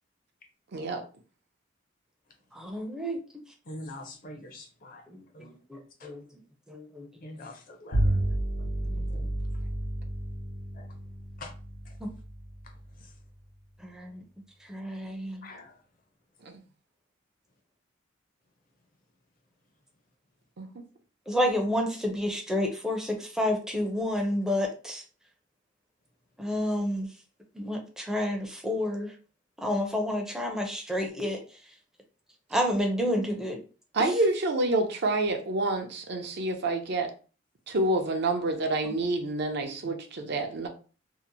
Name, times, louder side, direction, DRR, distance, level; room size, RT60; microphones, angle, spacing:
voice 1, 0.7-1.0 16.4-16.6 20.6-20.7 33.9-37.1 37.7-40.7, right 2 dB, 55° right, 0.5 m, -28 dB
voice 2, 2.5-3.2 5.1-6.3 6.7-7.4 8.0-8.3 8.9-9.1 12.0-12.1 13.8-14.2 14.6-15.5 21.3-25.0 26.4-27.1 27.5-29.2 29.6-31.7 32.5-33.6 34.0-34.2, left 1 dB, 5° right, 0.4 m, -30 dB
voice 3, 3.7-5.0 5.3-6.1 7.2-8.2 9.1-9.6 10.7-10.9 11.4-11.5 11.9-12.0 13.0-13.1 15.4-15.8, left 1 dB, 45° left, 0.5 m, -45 dB
Bowed string instrument, 7.9-13.6, right 1 dB, 75° left, 1.0 m, -32 dB
2.7 x 2.0 x 2.6 m
head